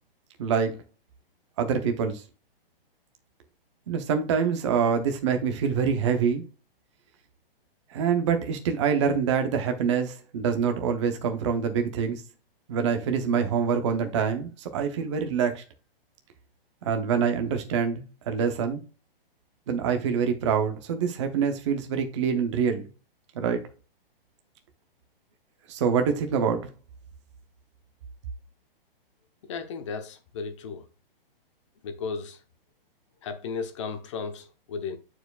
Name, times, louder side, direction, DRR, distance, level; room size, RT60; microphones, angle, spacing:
voice 1, 0.4-0.8 1.6-2.2 3.9-6.4 7.9-12.2 12.7-15.6 16.8-18.8 19.7-22.8 23.3-23.6 25.7-26.7, right 6 dB, 30° right, 0.7 m, -25 dB
voice 2, 29.5-30.9 31.8-32.4 33.2-35.0, left 5 dB, 30° left, 0.8 m, -35 dB
8.9 x 4.7 x 2.3 m
hypercardioid pair, 165°, 29 cm